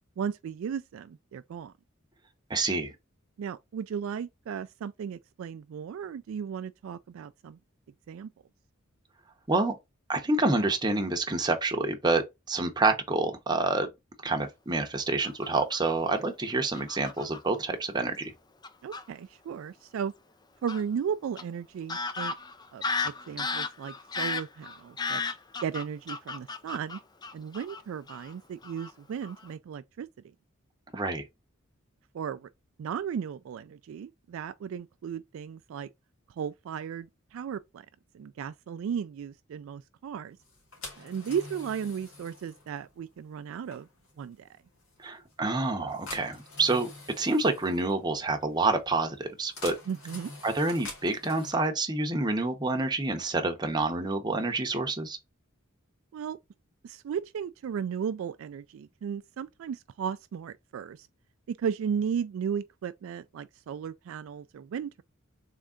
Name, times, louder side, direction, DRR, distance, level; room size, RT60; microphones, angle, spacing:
voice 1, 0.2-1.7 3.4-7.6 8.1-8.3 18.8-20.1 20.6-22.3 22.7-25.2 25.6-27.0 27.3-30.1 32.1-32.5 32.8-35.9 36.4-37.9 38.1-40.4 41.0-43.9 44.2-44.5 49.9-50.3 56.1-56.4 56.8-61.1 61.5-65.0, right 7 dB, 65° right, 0.3 m, -35 dB
voice 2, 2.5-2.9 9.5-9.7 10.1-13.9 14.2-18.3 30.9-31.2 45.0-46.9 47.2-49.7 50.4-55.2, right 2 dB, 20° right, 0.8 m, -28 dB
Fowl / Bird vocalization bird call bird song, 15.2-15.9 16.7-17.4 18.2-18.3 18.6-19.0 20.7-20.8 21.4-21.5 21.9-27.8 28.1-28.3 28.6-28.9 29.2-29.5, left 4 dB, 20° left, 0.4 m, -34 dB
sound 1, 40.4-51.5, left 2 dB, 85° left, 1.9 m, -47 dB
3.6 x 3.3 x 3.7 m
head